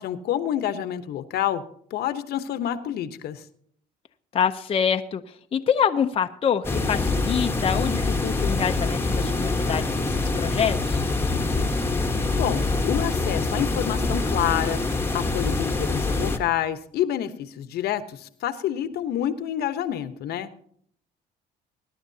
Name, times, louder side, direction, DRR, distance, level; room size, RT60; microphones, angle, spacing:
voice 1, 0.0-1.6 1.9-3.4 11.7-11.9 12.3-14.8 15.1-20.6, left 11 dB, 70° left, 11 dB, 1.0 m, -28 dB
voice 2, 4.3-11.1, left 7 dB, 35° left, 6 dB, 0.6 m, -26 dB
sound 1, 6.6-16.4, left 3 dB, 15° left, 1.2 m, -25 dB
21.5 x 11.0 x 2.8 m, 0.63 s
cardioid pair, 110°, 17 cm